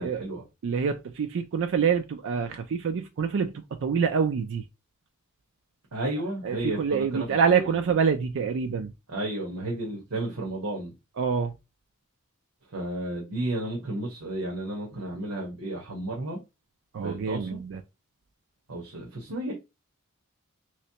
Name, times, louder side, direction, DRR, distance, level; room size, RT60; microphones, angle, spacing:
voice 1, 0.0-0.4 5.9-7.8 9.1-10.9 12.7-16.4 17.0-17.6 18.7-19.5, right 1 dB, 80° right, 1.1 m, -32 dB
voice 2, 0.6-4.7 6.4-8.9 11.2-11.5 16.9-17.8, right 6 dB, 60° right, 0.4 m, -26 dB
3.2 x 3.1 x 2.8 m
head